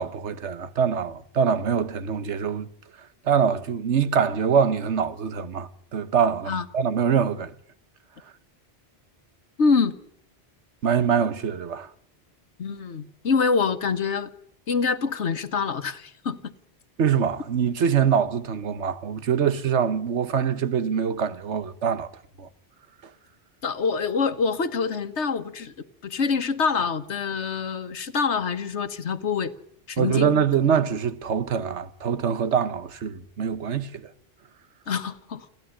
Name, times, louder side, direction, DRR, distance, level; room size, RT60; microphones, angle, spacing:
voice 1, 0.0-2.7 3.2-7.5 10.8-11.9 17.0-22.1 22.4-22.5 30.0-34.1, right 7 dB, 80° right, 1.4 m, -24 dB
voice 2, 9.6-9.9 12.6-14.3 14.7-16.5 23.6-25.7 26.0-29.5 29.9-30.4 30.6-30.7 34.9-35.5, left 5 dB, 75° left, 1.5 m, -25 dB
29.5 x 10.5 x 10.0 m
omnidirectional pair, 1.2 m